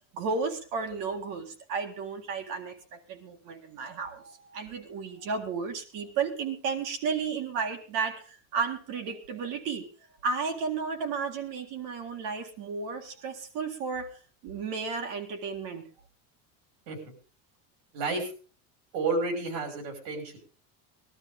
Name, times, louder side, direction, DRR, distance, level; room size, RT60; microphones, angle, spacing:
voice 1, 0.0-9.9 10.2-14.1 14.4-15.8, right 5 dB, 55° right, 5 dB, 2.1 m, -33 dB
voice 2, 17.9-18.3 18.9-20.4, right 3 dB, 75° right, 5 dB, 6.0 m, -31 dB
20.0 x 12.5 x 3.8 m, 0.37 s
cardioid pair, 175°, 39 cm